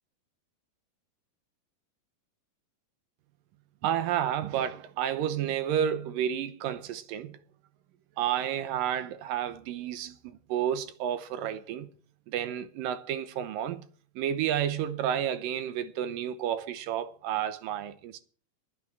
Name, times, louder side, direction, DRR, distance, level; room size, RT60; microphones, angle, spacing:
voice 1, 3.8-7.4 8.2-11.9 12.3-13.9 14.2-18.2, right 10 dB, 75° right, 2.4 m, -31 dB
11.5 x 9.7 x 7.6 m
omnidirectional pair, 4.2 m